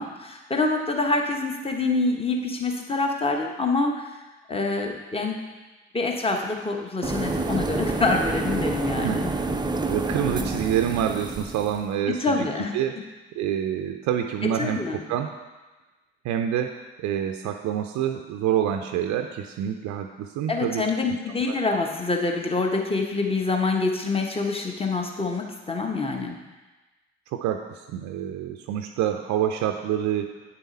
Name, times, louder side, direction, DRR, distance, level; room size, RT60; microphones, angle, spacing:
voice 1, 0.0-4.1 4.5-5.4 5.9-9.3 12.1-12.7 14.4-15.0 20.5-26.4, left 3 dB, 15° left, 2 dB, 1.3 m, -26 dB
sound 1, 7.0-11.8, right 2 dB, 15° right, 0.7 m, -28 dB
voice 2, 9.9-12.5 12.7-12.9 13.4-14.8 15.1-15.3 16.2-16.7 17.0-20.8 21.5-21.6 27.3-30.4, right 10 dB, 55° right, 4 dB, 0.6 m, -27 dB
8.8 x 7.0 x 4.2 m, 1.2 s
figure-of-eight pair, 45°, 34 cm